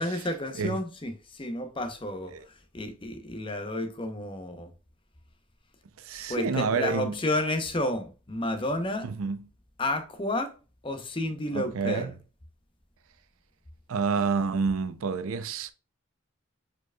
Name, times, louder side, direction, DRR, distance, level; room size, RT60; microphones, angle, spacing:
voice 1, 0.0-2.3 2.7-4.7 6.3-9.1 9.8-10.5 10.8-12.1, left 1 dB, 25° left, 0.7 m, -31 dB
voice 2, 6.0-7.1 9.0-9.4 11.5-12.1 13.9-15.7, right 5 dB, 90° right, 0.5 m, -28 dB
4.9 x 4.5 x 2.2 m
head